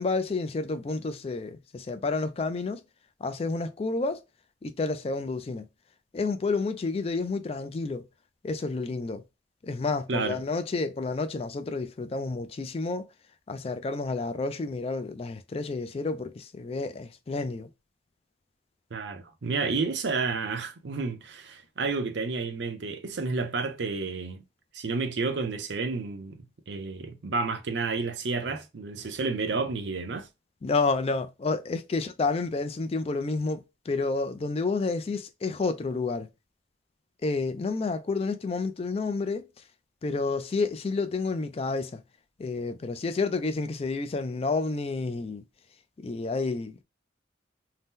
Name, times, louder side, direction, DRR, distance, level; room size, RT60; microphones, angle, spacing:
voice 1, 0.0-2.8 3.2-4.2 4.6-5.7 6.1-8.1 8.4-9.2 9.6-13.1 13.5-17.7 30.6-36.3 37.2-39.5 40.0-42.0 42.4-45.4 46.0-46.8, left 3 dB, 30° left, 0.3 m, -30 dB
voice 2, 10.1-10.4 18.9-24.4 24.7-30.3, right 4 dB, 70° right, 0.5 m, -31 dB
2.7 x 2.0 x 3.5 m
head